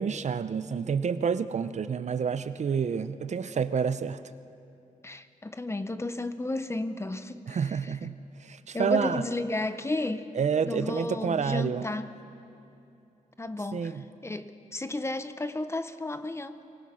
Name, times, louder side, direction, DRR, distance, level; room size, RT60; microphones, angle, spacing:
voice 1, 0.0-4.2 7.5-9.2 10.3-11.8 13.7-14.0, right 6 dB, 60° right, 13 dB, 0.6 m, -29 dB
voice 2, 5.0-7.9 8.7-10.3 10.7-12.1 13.4-13.9 14.2-14.5 14.7-16.6, left 2 dB, 20° left, 11 dB, 0.7 m, -33 dB
23.0 x 19.5 x 6.3 m, 2.7 s
wide cardioid pair, 125°, 14 cm